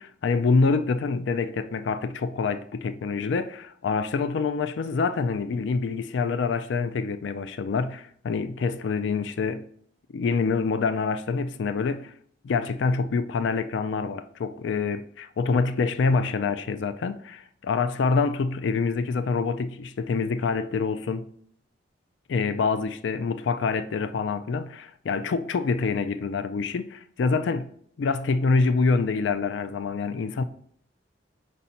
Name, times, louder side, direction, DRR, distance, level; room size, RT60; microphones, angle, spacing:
voice 1, 0.0-9.7 10.1-12.1 12.4-21.3 22.3-27.7 28.0-30.4, left 4 dB, 70° left, 0.4 m, -26 dB
5.0 x 4.1 x 5.6 m
head